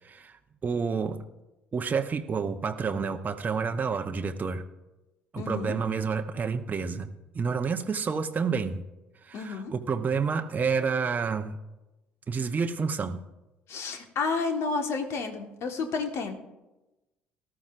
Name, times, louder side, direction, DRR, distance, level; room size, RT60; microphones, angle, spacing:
voice 1, 0.0-1.2 1.7-4.6 5.3-7.1 7.3-8.8 9.2-11.6 12.3-13.2, right 5 dB, 30° right, 6 dB, 0.8 m, -29 dB
voice 2, 5.4-5.7 9.3-9.7 13.7-16.3, left 4 dB, 55° left, 5 dB, 1.6 m, -31 dB
18.5 x 13.0 x 2.6 m, 1.0 s
figure-of-eight pair, 55°, 5 cm